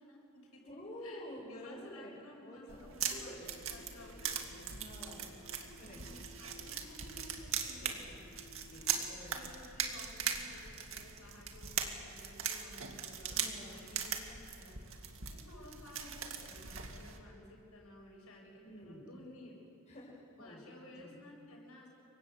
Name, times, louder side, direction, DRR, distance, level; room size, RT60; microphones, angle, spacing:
voice 1, 0.0-0.6 1.0-4.7 5.4-8.3 8.8-14.8 15.2-19.6 20.3-22.0, left 1 dB, 80° left, -1 dB, 7.3 m, -55 dB
voice 2, 0.6-2.2 2.4-2.8 3.1-3.4 4.7-5.4 5.8-6.0 8.7-9.3 10.0-10.3 13.3-13.8 18.6-19.1 19.9-20.6 20.9-21.2, equal, 30° left, -3 dB, 6.2 m, -49 dB
sound 1, 2.7-17.2, right 7 dB, 65° right, 2.3 m, -40 dB
sound 2, 3.4-9.1, left 1 dB, 55° left, 1.6 m, -57 dB
28.5 x 24.0 x 8.1 m, 2.4 s
head